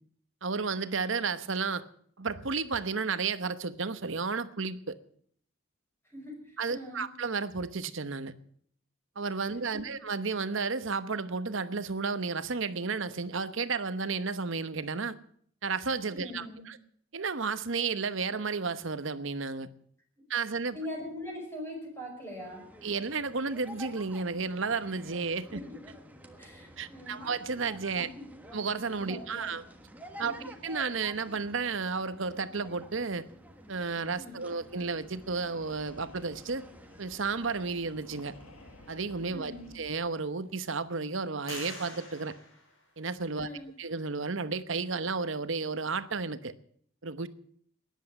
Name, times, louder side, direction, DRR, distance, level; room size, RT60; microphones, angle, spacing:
voice 1, 0.4-1.8 2.2-5.0 6.6-8.3 9.2-15.2 15.6-16.8 17.1-19.7 20.3-20.8 22.8-25.6 26.8-28.1 28.5-29.6 30.2-30.4 30.6-33.3 33.7-36.7 37.0-38.3 38.9-42.3 43.0-43.5 43.8-46.5 47.0-47.3, right 4 dB, 65° right, 1.0 m, -32 dB
voice 2, 6.0-7.1 9.4-9.9 16.1-16.7 20.7-22.7 25.5-25.8 26.4-27.3 27.9-28.3 29.1-29.5 30.2-30.5 34.1-34.5 39.3-39.7 43.3-43.7, left 1 dB, 10° left, 5.1 m, -42 dB
sound 1, 22.3-40.8, right 1 dB, 10° right, 1.4 m, -51 dB
sound 2, 34.7-39.9, left 1 dB, 90° left, 2.1 m, -55 dB
Impulsional Response Tànger Building Hall, 39.2-39.3 39.9-40.6 41.5-43.4, left 2 dB, 60° left, 5.5 m, -47 dB
14.0 x 10.5 x 8.5 m
head